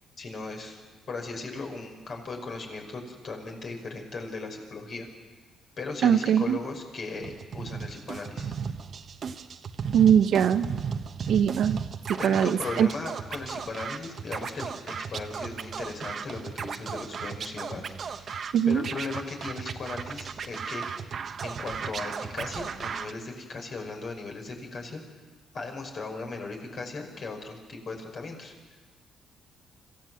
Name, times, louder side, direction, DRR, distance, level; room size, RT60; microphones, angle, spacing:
voice 1, 0.2-0.8 1.1-5.1 5.8-8.5 12.2-21.0 21.4-25.0 25.5-28.5, left 3 dB, 50° left, 2 dB, 5.6 m, -37 dB
voice 2, 6.0-6.6 9.9-10.7 11.3-11.8 12.1-12.9 18.5-18.8, right 8 dB, 70° right, 9 dB, 1.0 m, -21 dB
Scratching (performance technique), 7.2-23.1, right 6 dB, 50° right, 1.2 m, -36 dB
26.0 x 16.0 x 7.8 m, 1.3 s
cardioid pair, 90°, 0 cm